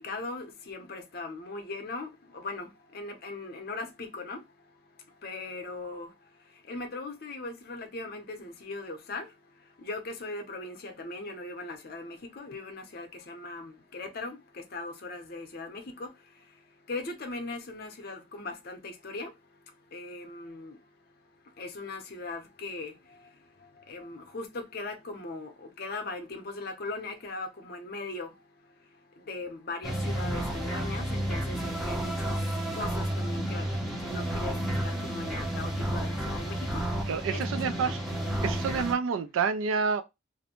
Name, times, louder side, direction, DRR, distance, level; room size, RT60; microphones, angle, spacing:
voice 1, 0.0-4.4 5.2-6.1 6.7-9.3 9.8-16.1 16.9-19.3 19.9-20.8 21.6-22.9 23.9-28.3 29.2-32.4 32.7-33.7 34.0-34.5 34.8-36.8 37.3-37.4 37.8-38.0, left 2 dB, 50° left, 0.6 m, -39 dB
sound 1, 29.8-38.9, right 1 dB, ahead, 0.5 m, -31 dB
voice 2, 37.1-38.0 38.4-40.0, right 5 dB, 80° right, 0.3 m, -28 dB
2.5 x 2.1 x 2.9 m
head